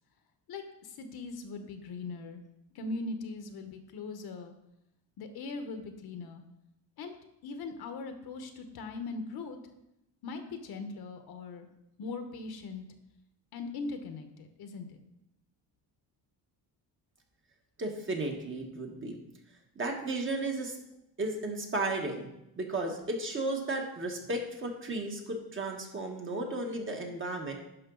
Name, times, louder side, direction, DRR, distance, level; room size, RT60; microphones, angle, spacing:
voice 1, 0.5-2.4 2.7-4.5 5.2-6.4 7.0-7.1 7.4-9.6 10.2-11.7 12.0-12.8 13.5-15.0, left 3 dB, 60° left, 7 dB, 1.1 m, -40 dB
voice 2, 17.8-19.2 19.8-20.8 21.2-22.3 22.6-27.5, right 2 dB, 30° right, 2 dB, 1.3 m, -34 dB
10.5 x 5.9 x 3.9 m, 0.85 s
cardioid pair, 155°, 42 cm